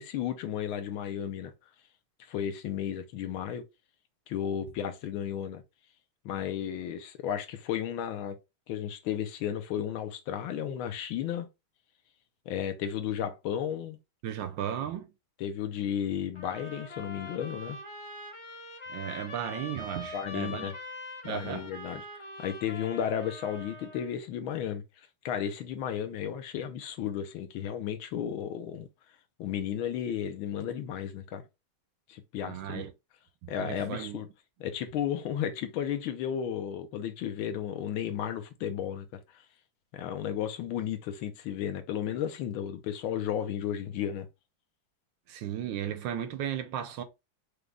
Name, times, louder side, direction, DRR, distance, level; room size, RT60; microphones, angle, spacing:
voice 1, 0.0-1.5 2.3-3.6 4.3-5.6 6.2-8.4 8.7-11.5 12.5-14.0 15.4-17.8 20.1-20.7 21.2-22.0 22.4-24.8 25.2-28.9 29.4-31.4 32.1-32.9 33.5-34.3 34.6-39.2 39.9-44.3, left 9 dB, 80° left, 1.6 m, -33 dB
voice 2, 14.2-15.1 18.9-20.7 21.2-21.7 32.4-32.9 33.4-34.2 45.3-47.0, right 10 dB, 75° right, 1.3 m, -35 dB
sound 1, 16.3-24.1, left 2 dB, 30° left, 0.5 m, -43 dB
5.1 x 2.3 x 3.3 m
omnidirectional pair, 2.2 m